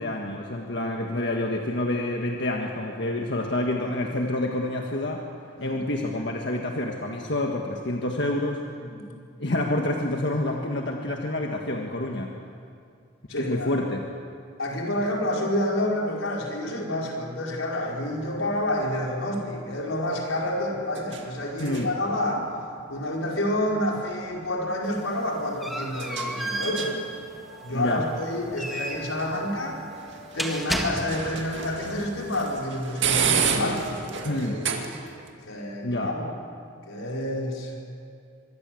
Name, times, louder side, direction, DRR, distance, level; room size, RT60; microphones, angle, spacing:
voice 1, 0.0-5.2 5.6-8.6 9.4-12.3 13.4-14.0 21.6-21.9 27.7-28.0 34.2-34.6 35.8-36.1, left 1 dB, 55° left, 1 dB, 1.7 m, -28 dB
voice 2, 13.3-13.8 14.6-22.5 22.9-26.9 27.6-29.8 30.3-34.7 35.5-36.3 36.9-37.7, left 1 dB, 80° left, -1 dB, 5.0 m, -29 dB
sound 1, 17.8-35.3, right 6 dB, 60° right, 2.3 m, -34 dB
sound 2, 24.8-31.5, right 1 dB, ahead, 1.8 m, -34 dB
25.0 x 22.5 x 7.8 m, 2.4 s
head